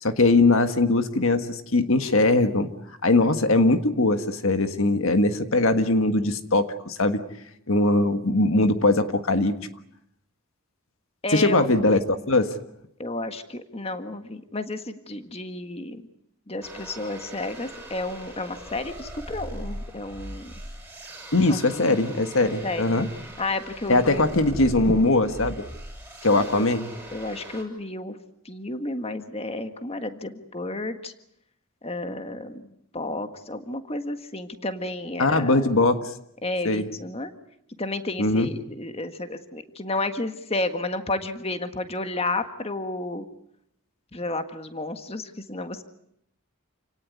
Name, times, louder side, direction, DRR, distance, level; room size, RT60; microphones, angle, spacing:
voice 1, 0.0-2.7 3.0-7.2 7.7-9.5 11.3-12.0 12.3-12.6 21.3-23.1 23.9-25.7 26.2-26.9 35.2-36.1 36.7-36.9 38.2-38.5, left 2 dB, 65° left, 8 dB, 1.6 m, -21 dB
voice 2, 11.2-11.7 13.0-16.1 16.5-20.5 21.5-22.1 22.4-23.1 23.4-24.2 26.4-26.6 27.1-28.2 28.5-31.1 31.8-35.7 36.4-37.3 37.8-43.3 44.1-45.8, left 2 dB, 25° left, 8 dB, 1.6 m, -32 dB
sound 1, 16.6-27.6, right 1 dB, 5° right, 6.5 m, -40 dB
29.0 x 18.0 x 9.5 m, 0.74 s
head